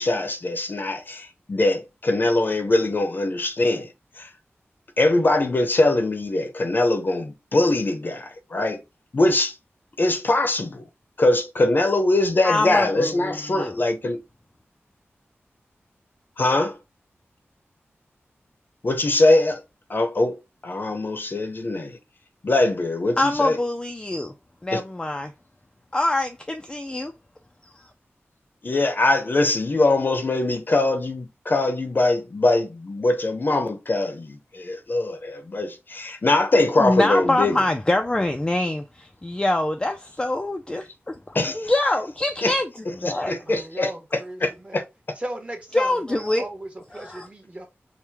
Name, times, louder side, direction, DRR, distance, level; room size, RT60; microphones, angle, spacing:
voice 1, 0.0-4.3 5.0-8.8 9.1-9.5 10.0-10.8 11.2-14.2 16.4-16.8 18.8-19.6 19.9-20.4 20.6-22.0 22.4-23.6 24.7-24.8 28.6-37.6 41.3-41.7 42.4-42.5 43.3-44.8, left 2 dB, 45° left, 0.7 m, -22 dB
voice 2, 12.4-13.8 23.2-24.3 24.6-25.3 25.9-27.1 27.6-27.9 36.8-43.5 45.7-46.5 46.9-47.3, left 2 dB, 15° left, 0.4 m, -25 dB
voice 3, 43.4-44.9 45.1-47.7, right 1 dB, 30° right, 1.0 m, -37 dB
4.5 x 2.1 x 3.4 m
wide cardioid pair, 105°, 5 cm